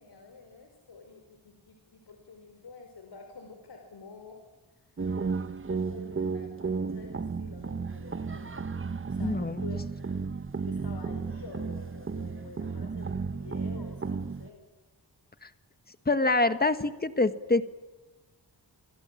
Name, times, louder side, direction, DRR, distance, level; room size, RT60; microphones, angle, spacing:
voice 1, 0.0-4.4 4.7-5.1 5.7-8.7 9.1-9.9 10.7-14.7, left 4 dB, 75° left, 4 dB, 4.5 m, -48 dB
sound 1, 5.0-14.5, right 4 dB, 30° right, 1.0 m, -33 dB
voice 2, 9.2-9.6 15.4-15.5 16.0-17.6, left 2 dB, 25° left, 10 dB, 1.6 m, -25 dB
28.0 x 26.5 x 7.4 m, 1.2 s
wide cardioid pair, 150°, 41 cm